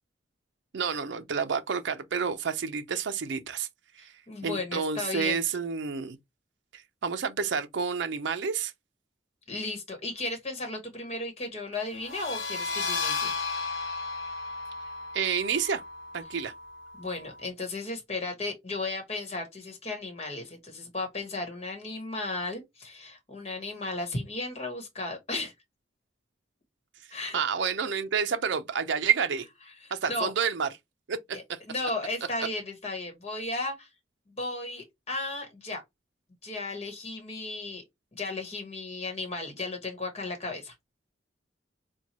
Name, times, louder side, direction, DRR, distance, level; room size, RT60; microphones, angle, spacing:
voice 1, 0.7-3.7 4.0-4.1 4.4-6.2 6.7-8.7 15.1-15.8 16.1-16.5 27.3-29.5 29.9-30.7 31.1-31.6, right 6 dB, 80° right, 0.5 m, -29 dB
voice 2, 4.3-5.4 9.5-13.3 17.0-25.5 27.1-27.4 29.8-30.3 31.3-31.4 31.7-33.9 34.4-35.8 36.4-37.8 38.1-40.7, left 2 dB, 35° left, 1.1 m, -35 dB
sound 1, 12.0-17.4, left 4 dB, 85° left, 0.9 m, -34 dB
4.3 x 2.2 x 2.9 m
head